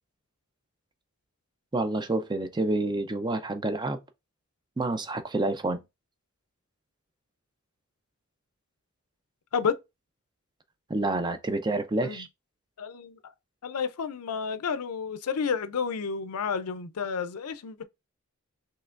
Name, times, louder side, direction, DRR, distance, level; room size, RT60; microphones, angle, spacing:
voice 1, 1.7-4.0 4.8-5.8 10.9-12.3, right 2 dB, 20° right, 0.5 m, -28 dB
voice 2, 12.8-13.2 13.6-17.8, left 6 dB, 85° left, 0.5 m, -31 dB
5.6 x 3.1 x 2.5 m
head